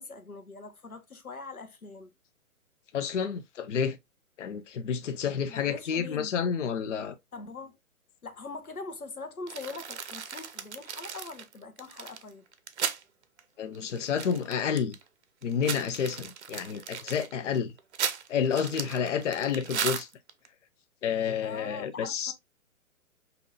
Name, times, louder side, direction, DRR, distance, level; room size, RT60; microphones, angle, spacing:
voice 1, 0.0-2.1 5.5-6.3 7.3-7.8 8.2-12.4 21.4-22.3, left 3 dB, 90° left, 1.0 m, -42 dB
voice 2, 2.9-4.0 4.4-7.1 13.6-14.9 15.4-17.7 18.3-20.1 21.0-22.3, left 7 dB, 60° left, 0.6 m, -30 dB
sound 1, 9.5-13.0 13.4-13.5 13.7-15.0 15.4-20.5, right 7 dB, 50° right, 0.7 m, -36 dB
5.3 x 2.8 x 2.5 m
figure-of-eight pair, 125°, 42 cm